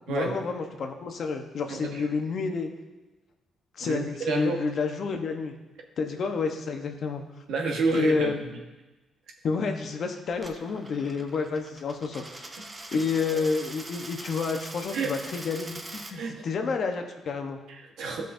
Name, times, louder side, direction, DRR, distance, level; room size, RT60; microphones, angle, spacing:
voice 1, 0.1-2.7 3.7-5.5 6.0-7.2 7.9-8.5 9.4-12.5 12.9-17.6, left 4 dB, 60° left, 4 dB, 0.9 m, -29 dB
voice 2, 1.7-2.0 3.8-4.6 7.5-8.4 14.9-15.1 16.1-16.5 17.7-18.3, right 4 dB, 80° right, 1 dB, 1.2 m, -29 dB
Coin (dropping), 10.3-16.1, right 2 dB, 20° right, 0.7 m, -42 dB
13.0 x 5.3 x 2.6 m, 1.1 s
cardioid pair, 90°, 0 cm